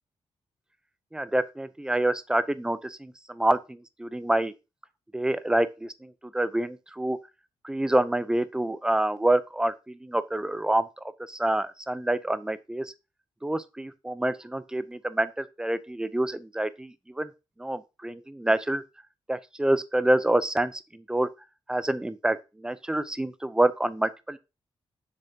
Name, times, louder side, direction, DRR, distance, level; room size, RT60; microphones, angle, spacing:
voice 1, 1.1-4.5 5.1-7.2 7.6-10.9 11.3-12.9 13.4-17.3 17.6-18.8 19.3-21.3 21.7-24.4, right 1 dB, 10° right, 0.5 m, -27 dB
6.9 x 6.7 x 2.8 m
cardioid pair, 110°, 10 cm